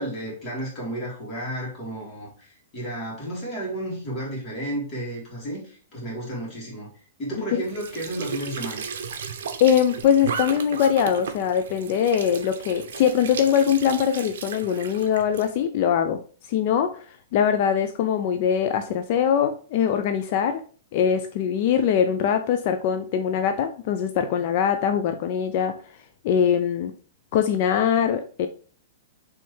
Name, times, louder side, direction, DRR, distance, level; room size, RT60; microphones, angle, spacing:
voice 1, 0.0-6.9 7.2-8.8, right 1 dB, 25° left, -5 dB, 2.1 m, -32 dB
Squeak / Sink (filling or washing) / Trickle dribble, 7.6-15.5, right 6 dB, 70° right, 0.6 m, -35 dB
voice 2, 9.6-16.2 16.5-20.6 20.9-25.8 26.2-26.9 27.3-28.5, left 8 dB, 40° left, 8 dB, 0.3 m, -22 dB
4.5 x 3.1 x 3.1 m, 0.42 s
hypercardioid pair, 160°, 0 cm